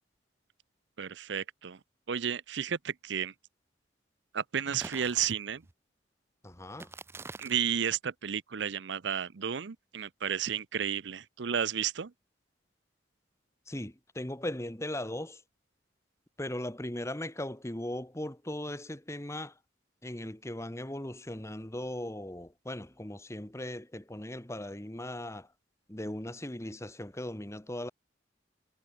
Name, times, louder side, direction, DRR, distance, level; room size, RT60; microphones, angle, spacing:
voice 1, 1.0-1.8 2.1-3.3 4.3-5.6 7.4-12.1, right 8 dB, 65° right, 0.6 m, -32 dB
sound 1, 4.7-5.7 6.7-7.7, right 3 dB, 15° right, 0.4 m, -46 dB
voice 2, 6.4-6.9 13.7-15.4 16.4-19.6 20.0-25.5 25.9-27.9, left 1 dB, 15° left, 1.4 m, -38 dB
head